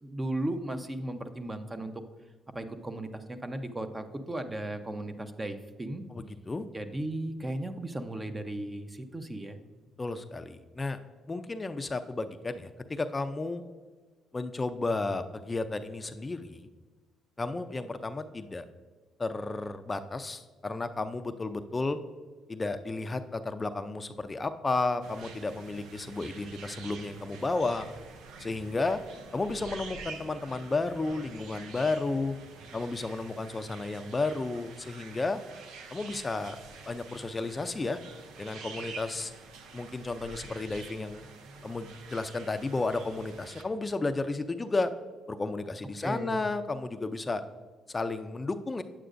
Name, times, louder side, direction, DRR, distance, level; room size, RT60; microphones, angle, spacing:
voice 1, 0.0-1.9 2.5-6.0 6.7-9.6 46.0-46.4, right 1 dB, 20° right, 8 dB, 0.7 m, -36 dB
voice 2, 6.1-6.7 10.0-11.0 11.3-13.6 14.3-16.7 17.4-18.7 19.2-22.0 22.5-27.9 28.4-29.0 29.3-32.3 32.7-35.4 35.9-36.6 36.9-38.0 38.4-39.3 39.7-41.2 41.6-44.9 45.3-47.4 47.9-48.8, left 3 dB, 25° left, 9 dB, 0.4 m, -32 dB
sound 1, 25.0-43.6, right 4 dB, 80° right, 0.6 m, -47 dB
8.8 x 7.8 x 2.5 m, 1.4 s
supercardioid pair, 70°, 0 cm